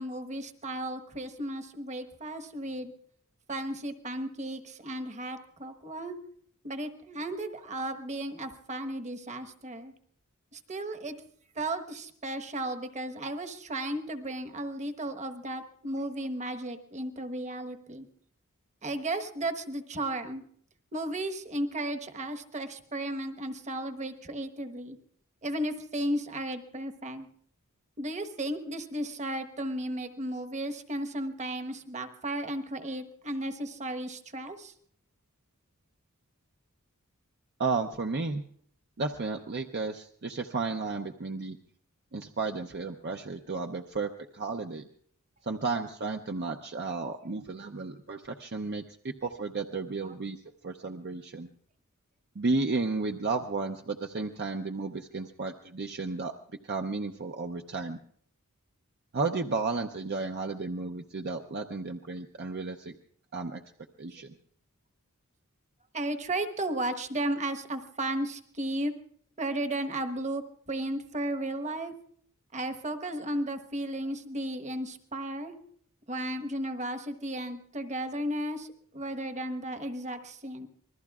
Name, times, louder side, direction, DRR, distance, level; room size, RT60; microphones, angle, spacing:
voice 1, 0.0-2.9 3.5-6.2 6.6-9.9 10.5-11.2 11.5-18.1 18.8-20.4 20.9-25.0 25.4-27.3 28.0-34.7 50.0-50.1 65.9-68.9 69.4-70.4 70.7-71.9 72.5-75.6 76.1-78.7 78.9-80.7, right 1 dB, 35° right, 8 dB, 1.2 m, -34 dB
voice 2, 37.6-38.4 39.0-41.6 42.1-44.9 45.5-50.4 50.6-51.5 52.3-56.3 56.6-58.0 59.1-62.9 63.3-63.6 64.0-64.4, right 3 dB, 50° right, 4 dB, 0.7 m, -33 dB
26.5 x 21.0 x 2.4 m, 0.62 s
head